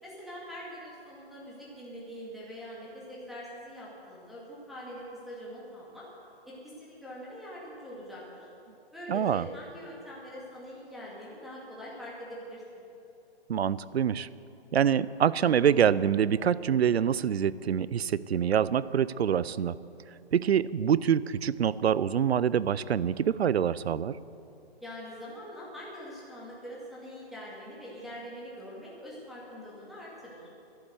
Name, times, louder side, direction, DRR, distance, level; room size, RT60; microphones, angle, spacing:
voice 1, 0.0-6.0 6.5-8.5 8.9-12.8 24.8-30.5, equal, ahead, -7 dB, 2.2 m, -43 dB
voice 2, 9.1-9.5 13.5-14.3 14.7-19.7 20.3-24.2, right 8 dB, 75° right, 18 dB, 0.6 m, -25 dB
12.0 x 11.5 x 7.9 m, 2.7 s
hypercardioid pair, 145°, 32 cm